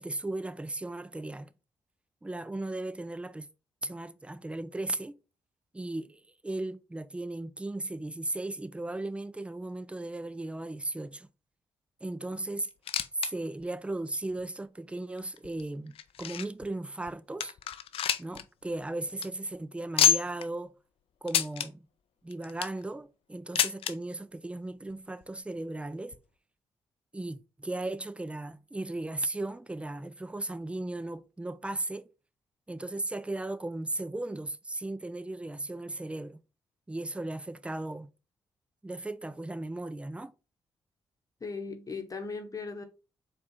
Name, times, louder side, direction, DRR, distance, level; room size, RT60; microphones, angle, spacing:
voice 1, 0.0-1.5 2.2-3.5 3.8-5.1 5.7-11.3 12.0-12.7 13.2-17.5 18.2-20.7 21.2-21.9 22.2-26.2 27.1-32.1 32.7-36.4 36.9-38.1 38.8-40.3, right 2 dB, 10° right, 0.4 m, -36 dB
sound 1, 12.6-13.3 13.6-13.7 14.4-14.5 15.2-16.7 17.1-17.2 17.4-18.4 18.7-18.8 19.1-19.3 20.0-20.5 21.3-21.7 22.3-22.8 23.6-23.9 24.9-25.0 25.2-25.3 26.1-26.2, left 9 dB, 70° left, 0.4 m, -28 dB
voice 2, 41.4-42.8, left 4 dB, 35° left, 1.0 m, -38 dB
4.3 x 2.4 x 4.1 m
supercardioid pair, 50°, 10 cm